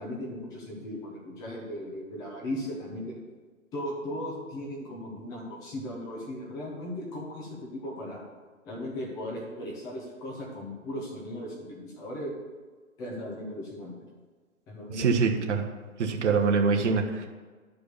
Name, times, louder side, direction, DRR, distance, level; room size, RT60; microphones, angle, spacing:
voice 1, 0.0-3.2 3.7-8.2 8.6-12.3 13.0-14.0 14.7-15.5, left 1 dB, 10° left, -3 dB, 0.7 m, -37 dB
voice 2, 15.0-15.6 16.0-17.3, right 5 dB, 55° right, 3 dB, 1.3 m, -24 dB
10.5 x 4.9 x 6.7 m, 1.4 s
hypercardioid pair, 145°, 43 cm